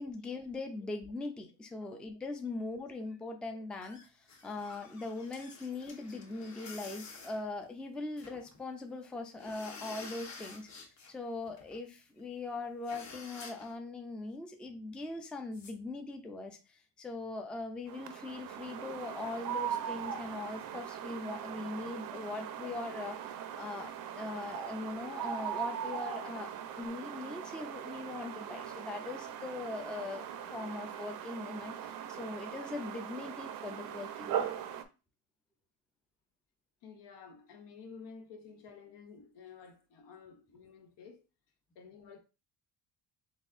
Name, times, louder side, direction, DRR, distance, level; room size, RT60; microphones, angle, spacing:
voice 1, 0.0-30.3 30.5-34.6, left 3 dB, 5° left, 0.3 m, -41 dB
sound 1, 3.8-8.6 8.9-9.0 9.3-11.1 11.4-11.8 12.2-12.3 12.5-12.6 12.8-13.7 15.5-15.7, left 4 dB, 40° left, 1.1 m, -50 dB
sound 2, 17.9-34.8, right 9 dB, 55° right, 0.5 m, -40 dB
voice 2, 36.8-41.2 41.7-42.2, left 5 dB, 85° left, 1.1 m, -52 dB
4.1 x 3.5 x 2.5 m
cardioid pair, 135°, 41 cm